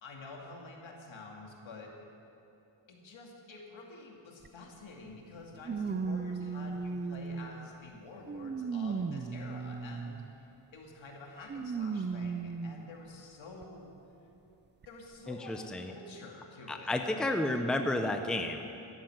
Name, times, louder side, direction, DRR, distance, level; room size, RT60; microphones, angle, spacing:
voice 1, 0.0-1.9 2.9-13.9 14.8-17.2, left 3 dB, 70° left, -1 dB, 2.5 m, -49 dB
sound 1, 4.4-4.5 5.6-7.7 8.3-10.3 11.5-12.9 13.6-13.7 14.8-14.9, right 5 dB, 25° right, 0.4 m, -36 dB
voice 2, 15.3-15.9 16.7-18.6, left 1 dB, ahead, 5 dB, 0.7 m, -31 dB
12.0 x 10.5 x 7.9 m, 2.8 s
wide cardioid pair, 110°, 48 cm